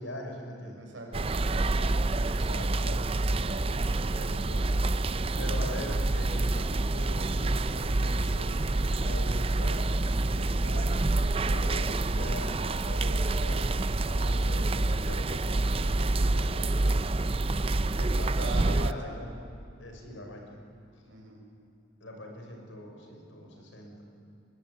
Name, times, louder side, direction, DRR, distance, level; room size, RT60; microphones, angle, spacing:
voice 1, 0.0-0.8 2.2-4.7 5.4-11.0 11.5-17.0 18.0-19.3 19.8-20.6 20.9-21.0 22.0-24.0, left 1 dB, 75° left, 2 dB, 5.9 m, -42 dB
voice 2, 0.8-1.8 5.7-6.1 18.3-19.1 21.1-21.4, right 2 dB, 80° right, 0 dB, 6.3 m, -41 dB
sound 1, 1.1-18.9, right 2 dB, 30° right, 0.5 m, -27 dB
23.0 x 21.5 x 9.6 m, 2.6 s
head